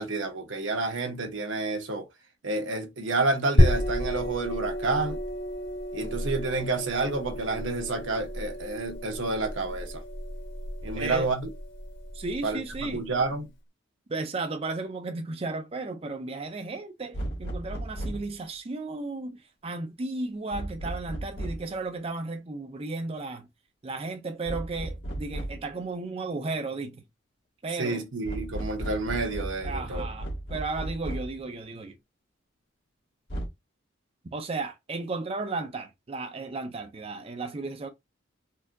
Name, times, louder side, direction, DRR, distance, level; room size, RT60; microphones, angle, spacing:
voice 1, 0.0-2.1 2.4-5.2 5.9-10.0 10.8-11.5 12.4-13.5 27.8-30.1, right 3 dB, 80° right, 1.1 m, -29 dB
sound 1, 3.6-12.9, equal, 85° left, 2.1 m, -29 dB
voice 2, 10.9-11.3 12.1-13.1 14.1-23.5 23.8-27.0 27.6-28.0 29.6-32.0 34.3-37.9, right 3 dB, 30° right, 0.5 m, -34 dB
sound 2, 17.1-18.3 20.5-21.7 24.5-25.7 28.3-31.4 33.3-33.5, right 1 dB, 65° left, 1.5 m, -35 dB
4.4 x 2.7 x 2.3 m
head